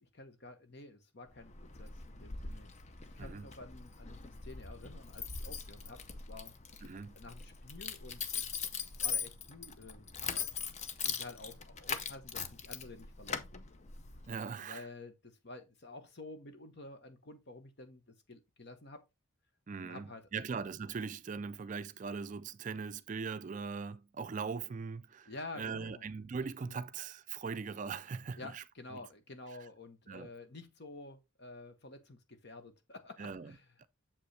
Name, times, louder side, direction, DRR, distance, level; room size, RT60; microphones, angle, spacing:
voice 1, 0.0-1.5 1.8-2.7 3.0-6.0 6.3-6.5 7.1-8.4 9.0-10.5 11.0-13.6 14.5-19.0 19.8-20.3 25.3-26.1 26.6-26.8 28.4-33.9, left 2 dB, 55° left, 1.1 m, -50 dB
Keys jangling, 1.3-14.4, left 6 dB, 35° left, 0.6 m, -41 dB
voice 2, 6.8-7.1 14.3-14.9 19.7-28.6 28.9-29.0 30.1-30.3 33.2-33.5 33.8-33.9, right 5 dB, 40° right, 0.4 m, -40 dB
7.1 x 5.2 x 3.3 m
head